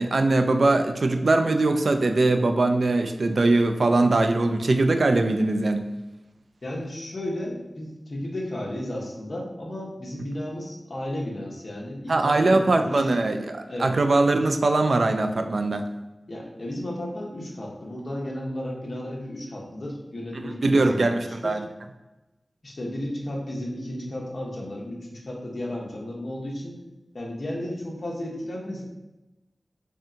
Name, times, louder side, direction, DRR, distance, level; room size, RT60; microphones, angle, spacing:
voice 1, 0.0-5.9 12.1-15.9 20.6-21.6, right 2 dB, 70° right, 6 dB, 0.3 m, -21 dB
voice 2, 6.6-13.1 13.7-13.9 14.4-14.5 16.3-21.6 22.6-26.8 27.1-28.8, left 1 dB, 55° left, -2 dB, 0.9 m, -33 dB
3.3 x 2.7 x 3.7 m, 1.0 s
wide cardioid pair, 85°, 0 cm